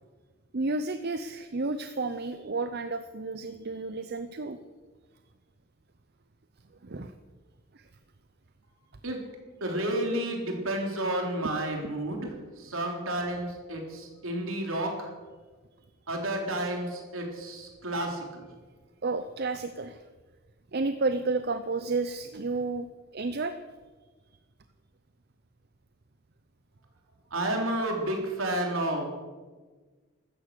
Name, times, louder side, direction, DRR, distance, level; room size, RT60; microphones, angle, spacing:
voice 1, 0.5-4.6 6.8-7.1 7.7-7.9 11.8-11.9 12.8-12.9 19.0-20.0 20.7-22.9 23.1-23.6, right 3 dB, 50° right, 10 dB, 0.7 m, -31 dB
voice 2, 9.6-12.3 12.6-15.1 16.1-18.5 27.3-29.2, right 1 dB, 70° right, 2 dB, 3.7 m, -31 dB
15.0 x 13.0 x 6.8 m, 1.4 s
head